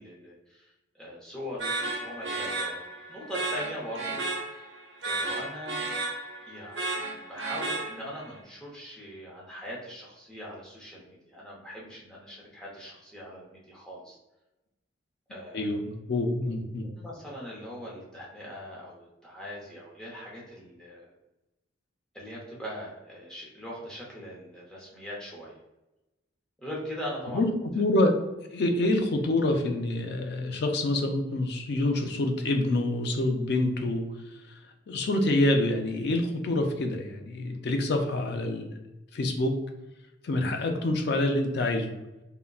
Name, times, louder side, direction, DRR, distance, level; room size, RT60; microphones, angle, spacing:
voice 1, 0.0-2.8 3.1-4.6 5.0-5.9 6.5-14.2 15.3-15.8 16.4-16.6 16.9-21.1 22.1-25.5 26.6-27.5, equal, 5° left, -5 dB, 0.6 m, -41 dB
sound 1, 1.6-8.3, right 2 dB, 60° right, 0.7 m, -33 dB
voice 2, 15.5-16.9 27.3-28.2 28.5-34.1 34.3-34.6 34.9-38.8 39.1-39.6 40.2-41.9, left 1 dB, 55° left, 4 dB, 0.4 m, -27 dB
3.7 x 2.1 x 2.3 m, 1.0 s
head